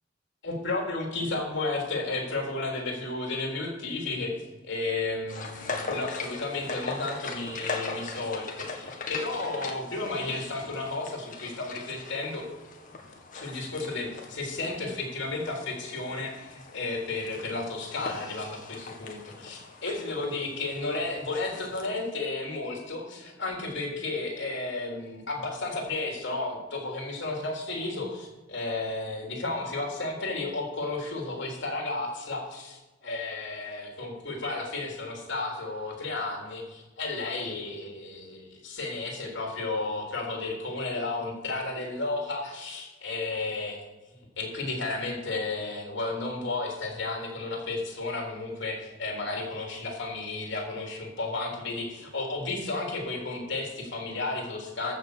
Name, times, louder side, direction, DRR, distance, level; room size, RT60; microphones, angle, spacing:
voice 1, 0.4-12.5 13.3-43.9 44.4-55.0, left 3 dB, 65° left, 0 dB, 3.5 m, -33 dB
sound 1, 5.3-21.9, left 4 dB, 45° left, 1.8 m, -40 dB
14.5 x 5.9 x 6.7 m, 1.2 s
head